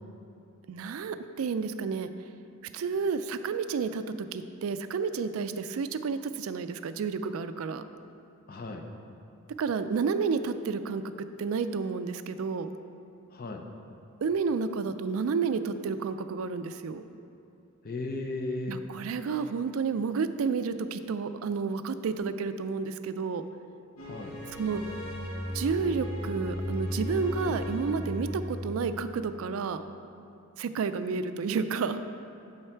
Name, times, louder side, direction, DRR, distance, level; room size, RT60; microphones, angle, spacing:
voice 1, 0.7-2.1 2.7-7.8 9.6-12.7 14.2-17.0 18.7-23.4 24.6-24.8 25.5-29.8 30.6-32.0, right 5 dB, 70° right, 11 dB, 0.4 m, -31 dB
voice 2, 8.5-8.9 13.3-13.7 17.8-18.8 24.0-24.4, left 2 dB, 45° left, 3 dB, 0.6 m, -35 dB
sound 1, 24.0-29.1, left 1 dB, 75° left, 1.5 m, -35 dB
7.6 x 5.7 x 4.5 m, 2.7 s
head